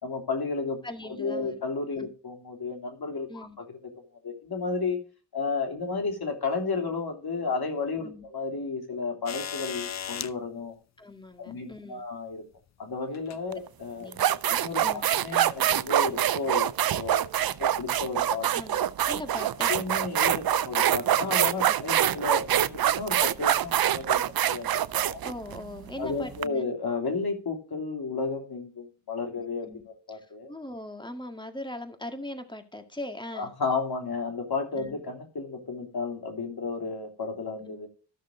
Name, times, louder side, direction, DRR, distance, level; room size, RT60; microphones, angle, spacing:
voice 1, 0.0-3.8 4.2-5.0 5.3-10.7 11.4-12.4 12.8-14.1 14.5-18.8 19.7-25.2 26.0-30.5 33.3-37.9, left 4 dB, 65° left, 4 dB, 3.2 m, -33 dB
voice 2, 0.8-1.6 2.0-2.1 3.3-3.6 8.0-8.2 11.0-12.0 14.0-14.3 14.8-15.0 18.5-18.8 19.1-19.7 25.2-26.6 29.7-29.8 30.1-30.2 30.5-33.5 34.7-35.0, left 1 dB, 10° left, 7 dB, 2.0 m, -40 dB
sound 1, 9.3-10.3 11.7-11.8 13.1-13.4 14.3-14.4, left 8 dB, 45° left, 0.6 m, -35 dB
sound 2, 13.5-13.7 14.1-26.4, right 11 dB, 65° right, 0.6 m, -25 dB
14.0 x 6.5 x 3.9 m, 0.35 s
cardioid pair, 50°, 40 cm